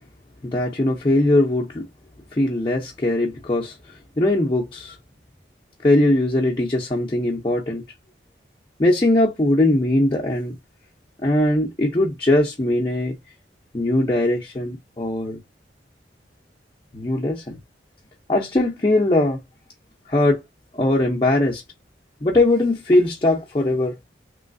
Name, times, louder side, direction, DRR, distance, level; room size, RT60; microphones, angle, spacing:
voice 1, 0.4-1.9 2.3-5.0 5.8-7.8 8.8-10.6 11.2-13.1 13.7-15.4 16.9-17.6 18.3-19.4 20.1-20.4 20.7-21.6 22.2-23.9, left 1 dB, 25° left, 0.6 m, -20 dB
3.2 x 3.1 x 2.5 m
head